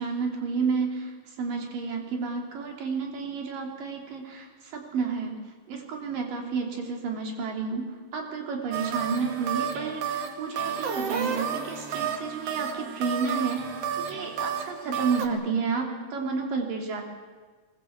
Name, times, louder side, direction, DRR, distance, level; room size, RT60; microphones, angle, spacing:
voice 1, 0.0-5.3 5.7-7.9 8.1-13.6 14.0-17.0, right 5 dB, 65° right, 2 dB, 4.7 m, -31 dB
sound 1, 8.7-15.3, right 7 dB, 50° right, 2.3 m, -31 dB
23.0 x 20.5 x 8.1 m, 1.4 s
omnidirectional pair, 4.1 m